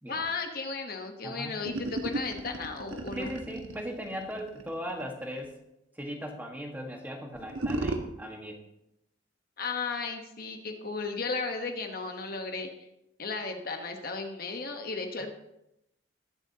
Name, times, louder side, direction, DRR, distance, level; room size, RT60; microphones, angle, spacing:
voice 1, 0.1-3.3 9.6-12.9 13.2-15.3, left 4 dB, 50° left, 4 dB, 1.1 m, -35 dB
voice 2, 1.2-1.6 3.1-5.5 6.0-8.6, equal, 10° right, 1 dB, 1.4 m, -38 dB
sound 1, 1.6-5.4 7.3-8.0, right 2 dB, 85° right, 1.2 m, -35 dB
20.0 x 7.6 x 2.8 m, 0.86 s
head